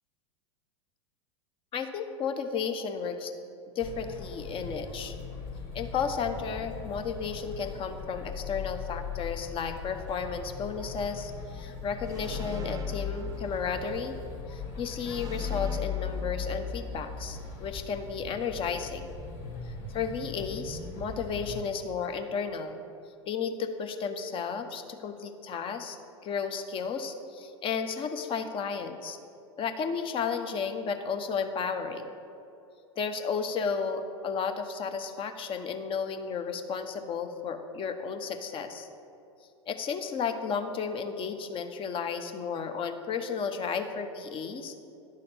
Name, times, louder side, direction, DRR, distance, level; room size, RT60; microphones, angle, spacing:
voice 1, 1.7-3.3 3.7-5.1 5.7-14.1 14.5-19.1 19.7-22.8 23.3-26.0 26.2-29.2 29.6-32.2 33.0-38.9 39.7-44.8, left 6 dB, 35° left, 7 dB, 0.8 m, -33 dB
sound 1, 3.8-21.6, left 6 dB, 55° left, 2.1 m, -38 dB
sound 2, 12.0-14.2 15.0-17.2, right 6 dB, 25° right, 0.6 m, -44 dB
11.0 x 4.1 x 6.6 m, 2.7 s
hypercardioid pair, 90°, 16 cm